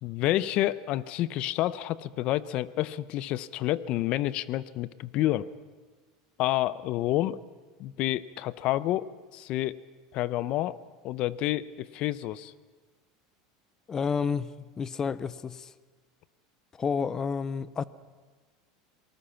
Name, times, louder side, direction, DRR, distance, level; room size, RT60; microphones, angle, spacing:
voice 1, 0.0-5.5 6.4-7.4 7.8-9.8 10.1-10.8 11.0-12.5, left 15 dB, 50° left, 0.8 m, -29 dB
voice 2, 13.9-15.7 16.8-17.8, left 6 dB, 20° left, 0.7 m, -30 dB
27.0 x 19.5 x 5.8 m
supercardioid pair, 135°, 2 cm